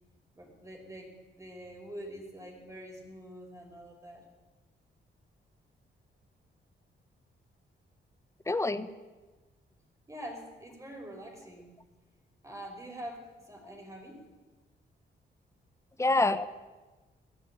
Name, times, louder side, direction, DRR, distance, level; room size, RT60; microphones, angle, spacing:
voice 1, 0.3-4.3 10.1-11.7 12.4-14.3, equal, 15° right, 1 dB, 5.5 m, -45 dB
voice 2, 8.5-8.9 16.0-16.5, left 2 dB, 15° left, 13 dB, 1.1 m, -26 dB
20.0 x 15.0 x 9.1 m, 1.2 s
cardioid pair, 115°, 19 cm